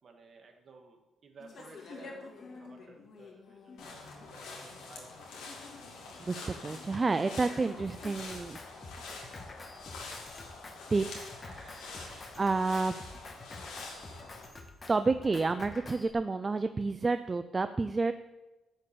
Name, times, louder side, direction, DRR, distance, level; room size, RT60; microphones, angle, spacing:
voice 1, 0.0-5.4 6.0-6.2 7.4-7.6 11.9-12.2, right 4 dB, 50° right, 2 dB, 2.3 m, -56 dB
sound 1, 1.4-8.1, left 4 dB, 55° left, 2.0 m, -50 dB
sound 2, 3.8-14.5, left 3 dB, 90° left, 2.5 m, -46 dB
voice 2, 6.2-8.6 10.9-12.9 14.9-18.1, right 3 dB, 30° right, 10 dB, 0.5 m, -30 dB
Drum kit, 7.8-16.1, left 2 dB, 30° left, 1.5 m, -48 dB
11.0 x 5.4 x 8.5 m, 1.1 s
cardioid pair, 90°, 0 cm